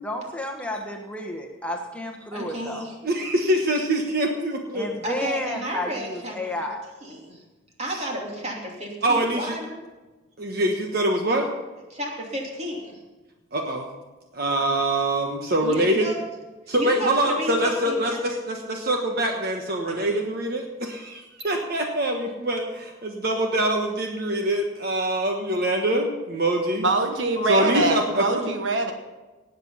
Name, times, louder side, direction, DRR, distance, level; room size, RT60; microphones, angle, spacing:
voice 1, 0.0-2.8 4.7-6.8, left 1 dB, 5° left, 1 dB, 1.3 m, -32 dB
voice 2, 2.3-3.0 5.0-6.4 7.0-7.4 7.8-9.8 11.9-13.0 15.6-16.2 16.8-18.2 19.9-20.0, equal, 35° right, 0 dB, 2.9 m, -32 dB
voice 3, 3.0-4.9 7.9-8.0 9.0-9.6 10.4-11.5 13.5-13.9 14.3-16.1 16.7-26.9 27.4-28.5, right 1 dB, 50° right, 3 dB, 1.3 m, -24 dB
voice 4, 26.8-28.9, right 3 dB, 65° right, 5 dB, 1.3 m, -23 dB
18.5 x 8.1 x 5.7 m, 1.2 s
head